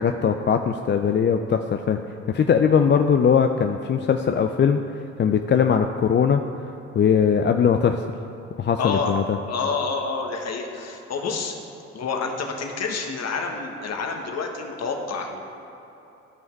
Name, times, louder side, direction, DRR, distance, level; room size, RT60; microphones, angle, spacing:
voice 1, 0.0-2.0 2.3-4.8 5.2-6.4 6.9-8.1 8.6-9.4, left 7 dB, 35° left, 6 dB, 0.5 m, -20 dB
voice 2, 8.8-9.1 9.5-11.5 11.9-15.4, left 4 dB, 50° left, 2 dB, 1.5 m, -28 dB
13.5 x 5.5 x 4.7 m, 3.0 s
hypercardioid pair, 55°, 33 cm